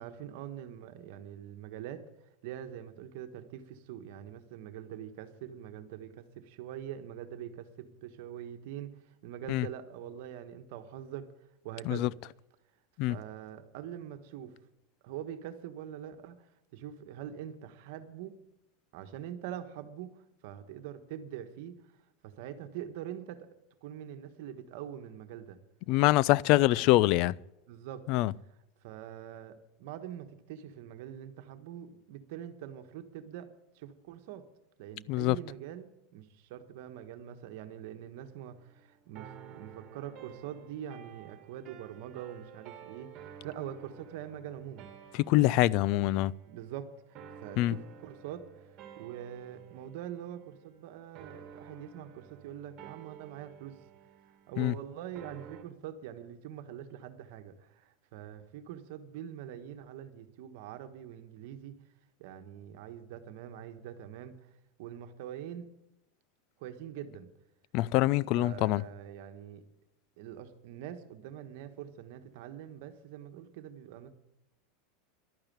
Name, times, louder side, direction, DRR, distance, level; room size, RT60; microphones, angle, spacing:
voice 1, 0.0-2.0 2.4-11.3 11.6-12.1 13.1-14.6 15.0-18.4 18.9-21.7 22.2-23.5 23.8-25.6 26.7-26.9 27.7-28.1 28.8-34.4 34.8-43.1 43.4-44.9 45.4-46.1 46.5-53.8 54.5-61.8 62.2-64.5 64.8-65.7 66.6-67.3 68.3-69.6 70.2-74.1, right 10 dB, 65° right, 1.3 m, -44 dB
voice 2, 25.9-27.3 28.1-28.3 35.1-35.4 45.2-46.3 47.6-47.7 54.6-54.7 67.7-68.8, left 17 dB, 55° left, 0.4 m, -24 dB
sound 1, 38.1-55.6, right 8 dB, 45° right, 2.0 m, -52 dB
12.0 x 8.9 x 8.7 m
supercardioid pair, 125°, 0 cm